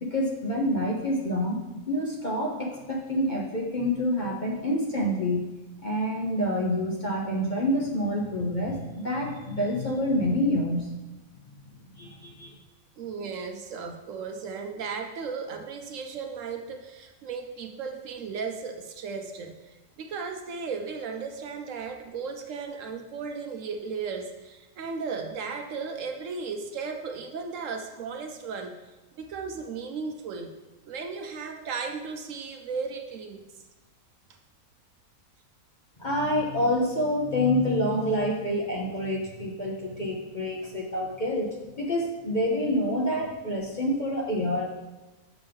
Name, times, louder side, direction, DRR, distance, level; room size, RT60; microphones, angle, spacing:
voice 1, 0.0-1.6 1.9-5.5 5.8-10.9 12.0-12.6 36.0-44.7, left 1 dB, 40° left, -2 dB, 0.8 m, -27 dB
voice 2, 13.0-28.8 29.2-30.5 30.8-33.5, right 5 dB, 65° right, 4 dB, 0.9 m, -35 dB
7.2 x 6.1 x 3.4 m, 1.1 s
omnidirectional pair, 1.5 m